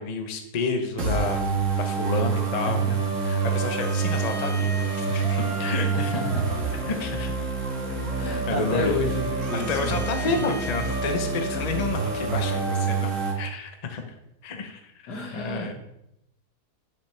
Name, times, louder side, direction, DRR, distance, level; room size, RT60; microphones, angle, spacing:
voice 1, 0.0-1.5 1.8-2.8 3.2-6.2 6.9-7.3 7.9-9.0 9.5-14.0 14.4-15.7, left 4 dB, 35° left, 5 dB, 0.7 m, -30 dB
sound 1, 1.0-13.3, right 4 dB, 50° right, 2.0 m, -27 dB
voice 2, 2.7-3.0 5.9-6.5 8.2-10.3 15.1-15.7, left 1 dB, 80° left, 1 dB, 2.1 m, -31 dB
9.8 x 6.6 x 3.3 m, 0.82 s
omnidirectional pair, 1.8 m